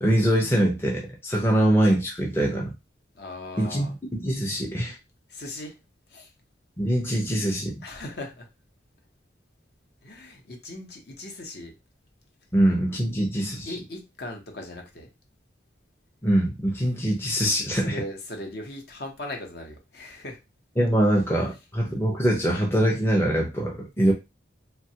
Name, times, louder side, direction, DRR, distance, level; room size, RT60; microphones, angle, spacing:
voice 1, 0.0-2.7 3.6-3.9 4.1-5.0 6.8-7.7 12.5-13.7 16.2-18.0 20.8-24.1, right 1 dB, 10° left, -2 dB, 0.5 m, -23 dB
voice 2, 3.1-3.9 5.3-5.8 6.1-6.3 7.8-8.5 10.0-11.7 13.7-15.1 17.7-20.4, left 1 dB, 55° left, 2 dB, 0.8 m, -38 dB
3.1 x 2.3 x 2.8 m, 0.25 s
head